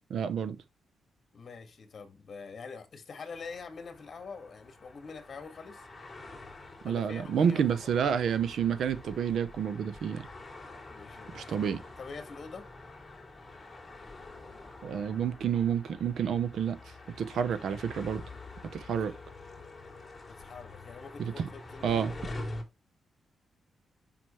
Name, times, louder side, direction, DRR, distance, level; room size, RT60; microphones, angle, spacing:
voice 1, 0.1-0.6 6.8-10.3 11.3-11.8 14.8-18.2 18.7-19.1 21.2-21.3 21.8-22.1, right 7 dB, 70° right, 0.9 m, -29 dB
voice 2, 1.3-5.9 6.8-7.9 10.9-11.7 12.0-12.7 17.3-17.4 18.9-19.0 20.3-22.3, left 5 dB, 45° left, 1.9 m, -45 dB
sound 1, 3.3-22.6, left 2 dB, 20° left, 3.1 m, -46 dB
7.8 x 6.0 x 3.2 m
cardioid pair, 110°, 0 cm